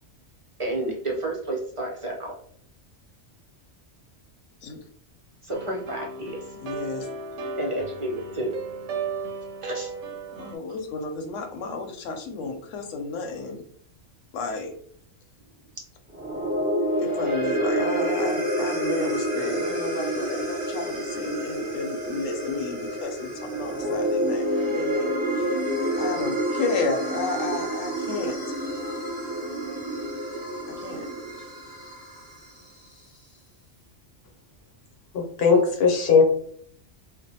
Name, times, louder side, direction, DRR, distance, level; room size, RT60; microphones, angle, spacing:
voice 1, 0.6-2.4 5.4-6.4 7.6-8.5 9.6-9.9, right 2 dB, 40° right, -2 dB, 0.4 m, -30 dB
sound 1, 5.5-10.6, right 3 dB, 85° right, 0.9 m, -35 dB
voice 2, 6.6-7.1 10.4-13.6 14.3-14.7 17.0-25.6 25.9-28.5 30.7-31.1 31.4-31.5, left 4 dB, 90° left, 4 dB, 0.9 m, -32 dB
sound 2, 16.1-32.6, right 1 dB, 10° right, 0.8 m, -28 dB
voice 3, 35.1-36.2, left 5 dB, 60° left, 0 dB, 0.9 m, -19 dB
2.5 x 2.1 x 2.7 m, 0.63 s
omnidirectional pair, 1.2 m